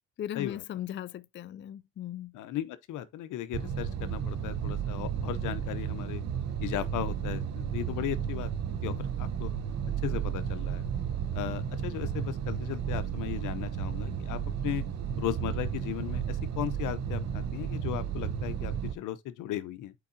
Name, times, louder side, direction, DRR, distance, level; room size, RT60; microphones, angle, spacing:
voice 1, 0.2-2.3, left 11 dB, 40° left, 0.4 m, -38 dB
voice 2, 2.3-6.2 6.6-8.5 8.8-9.5 10.0-10.8 11.3-14.8 15.2-19.9, left 12 dB, 85° left, 0.8 m, -36 dB
sound 1, 3.5-18.9, right 8 dB, 60° right, 1.1 m, -33 dB
8.2 x 4.8 x 2.7 m
cardioid pair, 90°, 30 cm